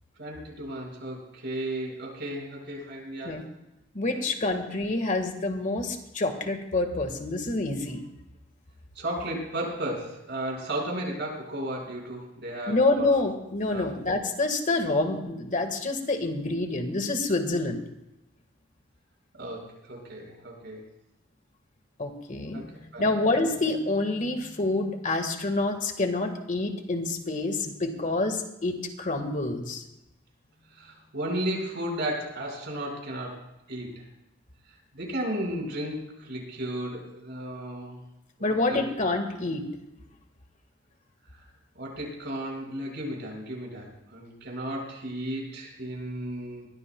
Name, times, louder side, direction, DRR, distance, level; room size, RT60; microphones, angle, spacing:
voice 1, 0.2-3.5 4.1-4.2 9.0-13.1 13.7-13.9 19.4-20.8 22.5-22.6 22.9-23.4 30.7-33.4 33.7-34.1 34.9-38.0 38.4-38.9 41.8-46.7, right 1 dB, 60° right, -1 dB, 5.3 m, -34 dB
voice 2, 3.9-8.0 12.7-17.8 22.0-29.8 38.4-39.6, left 2 dB, 40° left, 6 dB, 1.7 m, -27 dB
22.0 x 16.5 x 2.3 m, 0.92 s
head